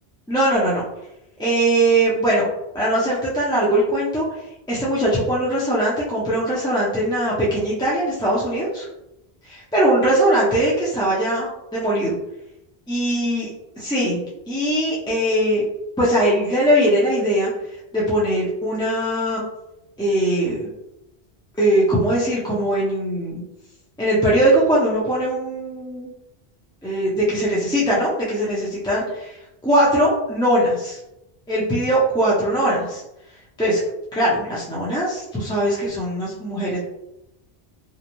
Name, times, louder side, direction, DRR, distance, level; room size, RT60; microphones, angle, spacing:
voice 1, 0.3-0.8 1.4-2.5 2.7-4.2 4.7-8.9 9.4-12.1 12.9-13.5 13.8-14.2 14.5-15.6 16.0-17.5 17.9-19.4 20.0-20.7 21.6-23.4 24.0-26.1 26.8-31.0 31.5-33.0 33.6-33.8 34.1-36.8, right 1 dB, 5° left, -7 dB, 0.4 m, -20 dB
2.5 x 2.1 x 2.9 m, 0.89 s
omnidirectional pair, 1.0 m